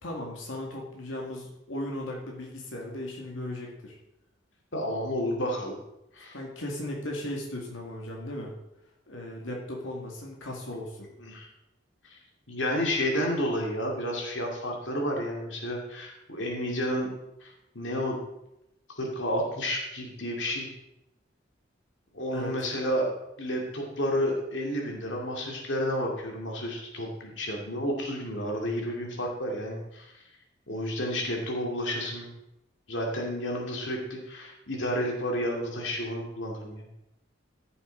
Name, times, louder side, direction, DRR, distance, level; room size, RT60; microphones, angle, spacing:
voice 1, 0.0-4.0 6.3-8.5 9.1-11.1 22.3-22.6, left 1 dB, 90° left, -1 dB, 2.2 m, -37 dB
voice 2, 4.7-5.8 6.1-6.4 11.2-11.5 12.1-12.2 12.5-17.1 17.4-18.2 19.0-20.7 22.1-30.2 30.7-32.3 32.9-36.9, equal, 70° left, 0 dB, 2.3 m, -31 dB
14.5 x 7.0 x 4.0 m, 0.87 s
head